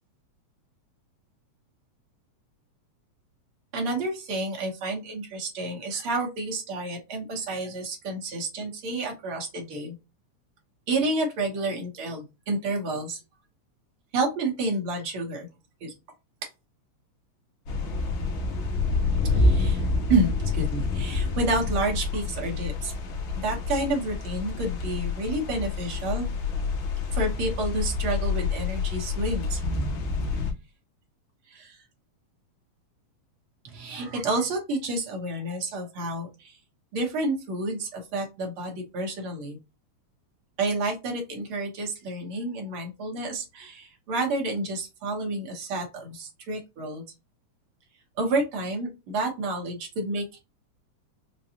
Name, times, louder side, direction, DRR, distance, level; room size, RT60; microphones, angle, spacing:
voice 1, 3.7-9.9 10.9-13.2 14.1-15.5 15.8-15.9 19.2-22.9 23.3-26.3 27.1-29.6 31.5-31.8 33.6-36.5 36.9-39.6 40.6-47.0 48.2-50.4, right 2 dB, 60° right, 1 dB, 1.6 m, -30 dB
sound 1, 17.7-30.5, left 3 dB, 70° left, 1.2 m, -28 dB
5.2 x 2.3 x 2.7 m, 0.25 s
omnidirectional pair, 3.4 m